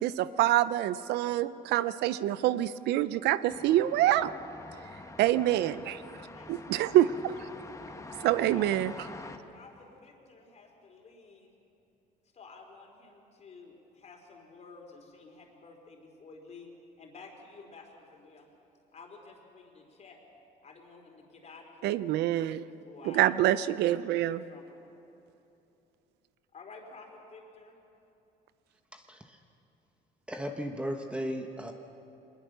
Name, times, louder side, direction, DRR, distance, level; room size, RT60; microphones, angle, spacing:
voice 1, 0.0-4.3 5.2-6.0 6.5-7.5 8.2-8.9 21.8-22.6 23.1-24.4, right 13 dB, 80° right, 15 dB, 0.6 m, -26 dB
sound 1, 3.5-9.4, left 3 dB, 20° left, 1.3 m, -46 dB
voice 2, 5.2-5.7 6.3-6.5 8.5-8.8 9.5-11.5 12.3-18.5 18.9-20.2 20.6-22.1 22.5-23.2 24.1-24.6 26.5-27.8, left 4 dB, 40° left, 2 dB, 4.0 m, -52 dB
voice 3, 28.9-29.4 30.3-31.7, equal, 5° right, 4 dB, 1.3 m, -36 dB
22.0 x 20.5 x 6.8 m, 2.8 s
cardioid pair, 110°, 17 cm